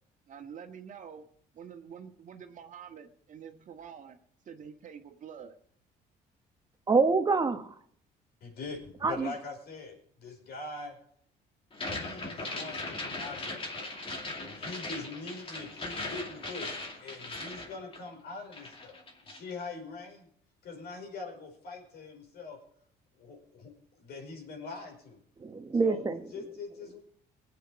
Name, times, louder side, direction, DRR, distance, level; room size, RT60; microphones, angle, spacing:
voice 1, 0.3-1.2 1.5-4.2 4.4-5.6, right 7 dB, 50° right, 5 dB, 1.7 m, -47 dB
voice 2, 6.9-7.7 9.0-9.3 25.4-26.2, right 4 dB, 25° right, 6 dB, 1.1 m, -26 dB
voice 3, 8.4-11.0 11.9-13.9 14.3-20.3 20.6-22.6 23.2-23.7 24.0-25.2 25.8-26.0 26.3-27.0, left 3 dB, 70° left, 2 dB, 5.1 m, -43 dB
sound 1, 11.7-18.3 18.5-19.5, left 2 dB, 30° left, 2.5 m, -39 dB
20.0 x 8.6 x 4.8 m, 0.64 s
cardioid pair, 110°, 17 cm